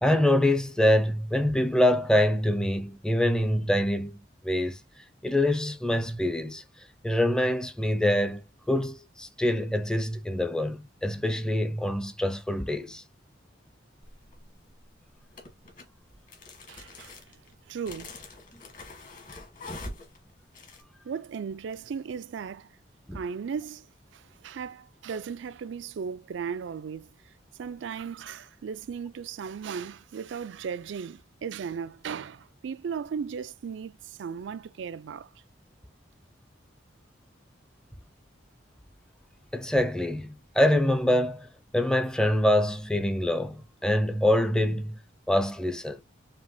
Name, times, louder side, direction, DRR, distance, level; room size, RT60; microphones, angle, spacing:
voice 1, 0.0-4.2 4.4-4.8 5.2-6.6 7.0-8.4 8.7-13.0 23.1-23.2 39.5-41.5 41.7-45.0 45.3-46.0, left 1 dB, 5° left, 0.5 m, -25 dB
sound 1, 14.0-14.5 15.3-20.8, left 2 dB, 45° left, 1.4 m, -44 dB
voice 2, 16.7-17.2 17.7-18.1 21.0-22.7 23.1-23.9 24.1-27.1 27.6-35.3, right 6 dB, 75° right, 0.3 m, -36 dB
5.0 x 2.9 x 2.6 m
head